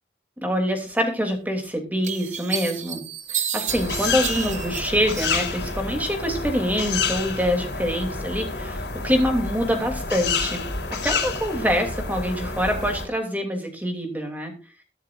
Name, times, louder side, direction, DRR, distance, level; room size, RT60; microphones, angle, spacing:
voice 1, 0.4-3.0 3.3-10.6 11.0-14.5, equal, 10° right, 3 dB, 2.9 m, -25 dB
sound 1, 1.3-1.4 2.0-5.7 6.1-6.8, right 8 dB, 40° right, 1.1 m, -31 dB
sound 2, 3.7-13.1, left 4 dB, 80° left, 4.3 m, -29 dB
22.0 x 7.4 x 2.6 m, 0.36 s
head